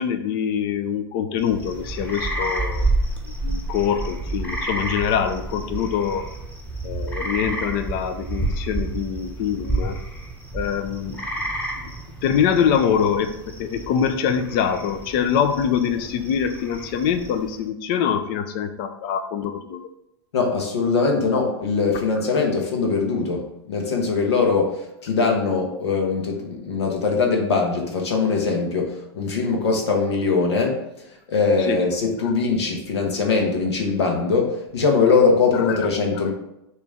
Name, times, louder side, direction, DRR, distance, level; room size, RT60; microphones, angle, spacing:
voice 1, 0.0-2.9 3.3-6.3 6.8-10.0 10.5-11.2 12.2-19.8 31.7-31.8 32.2-32.3 35.5-35.8, left 8 dB, 55° left, 8 dB, 0.7 m, -24 dB
sound 1, 1.4-17.6, right 2 dB, 10° left, 1.1 m, -30 dB
voice 2, 20.3-30.8 31.3-36.3, left 4 dB, 85° left, 1 dB, 1.4 m, -21 dB
6.6 x 3.1 x 5.0 m, 0.84 s
hypercardioid pair, 110°, 14 cm